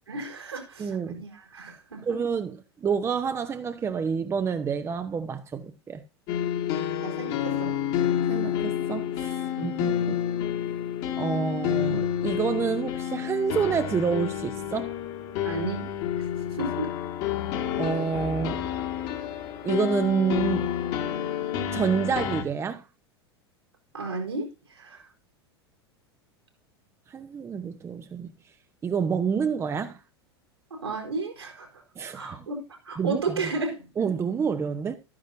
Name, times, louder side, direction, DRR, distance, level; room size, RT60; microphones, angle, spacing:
voice 1, 0.1-2.2 7.0-7.7 9.6-9.8 15.4-15.9 16.2-16.9 23.9-25.1 30.7-31.8 32.1-33.8, right 3 dB, 80° right, 4.3 m, -33 dB
voice 2, 0.8-1.2 2.0-6.0 8.3-10.2 11.2-14.9 15.3-15.4 17.8-18.7 19.6-20.7 21.7-22.8 27.1-28.3 28.8-30.0 32.0-32.5 33.0-33.5 34.0-34.9, right 6 dB, 20° right, 0.9 m, -28 dB
sound 1, 6.3-22.4, left 10 dB, 50° left, 2.0 m, -29 dB
13.0 x 9.7 x 2.7 m
figure-of-eight pair, 85°, 13 cm